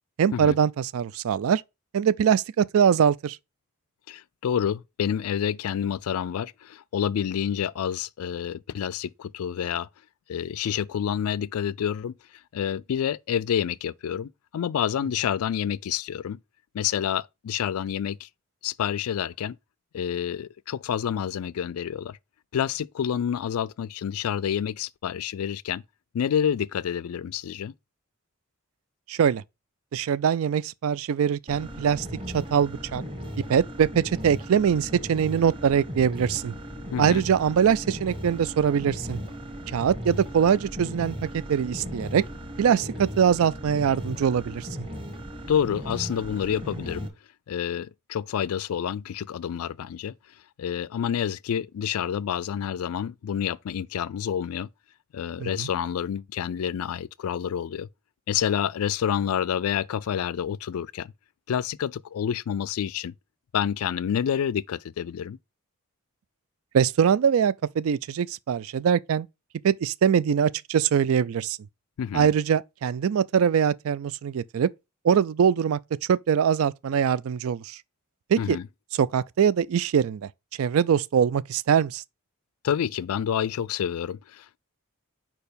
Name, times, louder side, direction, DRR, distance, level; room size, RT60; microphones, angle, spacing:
voice 1, 0.2-1.6 1.9-3.4 29.1-29.4 29.9-32.1 32.3-33.0 33.5-36.5 37.0-39.2 39.7-42.2 42.6-44.7 55.4-55.7 66.7-69.3 69.6-71.6 72.1-74.7 75.0-75.8 76.1-77.8 78.3-78.6 79.0-80.3 80.6-82.0, right 7 dB, 65° right, 0.3 m, -23 dB
voice 2, 4.1-9.9 10.3-12.1 12.5-16.4 16.7-18.3 18.6-19.6 19.9-22.2 22.5-25.8 26.1-27.7 36.9-37.2 45.5-47.1 47.5-50.1 50.6-54.7 55.1-57.9 58.3-61.1 61.5-63.1 63.5-65.4 72.0-72.3 78.4-78.7 82.6-84.6, left 8 dB, 75° left, 0.3 m, -28 dB
sound 1, 31.5-47.1, equal, 25° right, 1.2 m, -37 dB
4.7 x 4.6 x 5.0 m
head